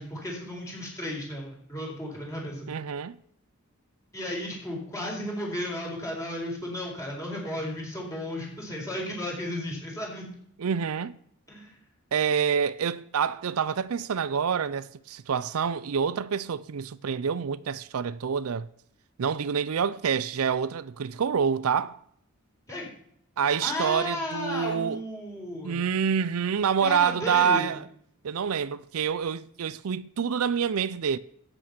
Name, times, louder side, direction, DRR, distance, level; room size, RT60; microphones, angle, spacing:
voice 1, 0.0-2.7 4.1-10.3 11.5-11.8 22.7-22.9 23.6-25.8 26.8-27.7, left 1 dB, 15° left, 4.4 m, -34 dB
voice 2, 2.7-3.2 10.6-11.2 12.1-18.7 19.2-22.0 23.4-25.0 25.6-27.9 28.2-31.2, right 7 dB, 80° right, 0.5 m, -27 dB
12.5 x 8.9 x 6.0 m
head